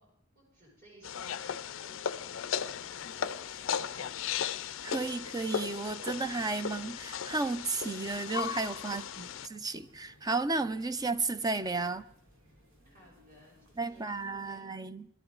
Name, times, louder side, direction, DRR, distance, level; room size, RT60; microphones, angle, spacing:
voice 1, 0.0-4.4 8.8-9.5 12.8-14.7, equal, 45° right, 6.7 m, -59 dB
sound 1, 1.0-9.5, left 8 dB, 70° left, 0.5 m, -36 dB
sound 2, 2.8-14.6, left 1 dB, 75° right, 2.7 m, -62 dB
voice 2, 4.8-12.0 13.8-15.1, right 3 dB, 20° right, 0.5 m, -33 dB
20.5 x 12.5 x 3.9 m
head